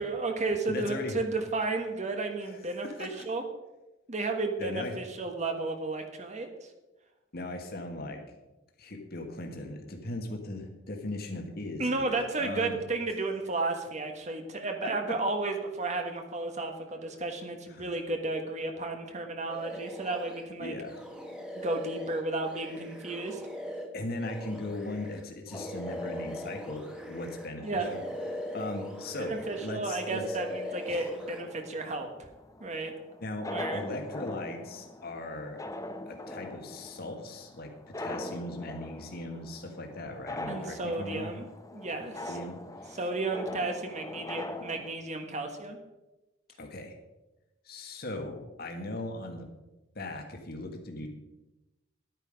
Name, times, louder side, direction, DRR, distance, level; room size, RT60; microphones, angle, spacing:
voice 1, 0.0-3.4 4.1-6.7 11.8-20.7 21.5-23.4 27.6-27.9 29.2-32.3 32.6-32.9 33.5-33.8 40.5-41.5 41.7-42.4 43.0-45.8, right 3 dB, 40° right, 4 dB, 1.4 m, -33 dB
voice 2, 0.7-1.2 2.4-3.1 4.6-4.9 7.3-8.2 8.8-12.8 14.8-15.2 17.7-17.9 20.6-21.0 23.9-28.0 28.3-30.4 30.9-31.1 33.2-35.6 36.0-41.3 42.2-43.0 46.6-46.9 47.6-49.5 49.9-51.1, left 2 dB, 55° left, 3 dB, 1.6 m, -38 dB
sound 1, 19.5-20.5 20.9-27.5 27.7-29.7 30.0-31.4, equal, 5° right, 1.4 m, -40 dB
sound 2, 25.5-44.9, left 2 dB, 20° left, 0.7 m, -43 dB
11.5 x 9.2 x 5.2 m, 1.1 s
head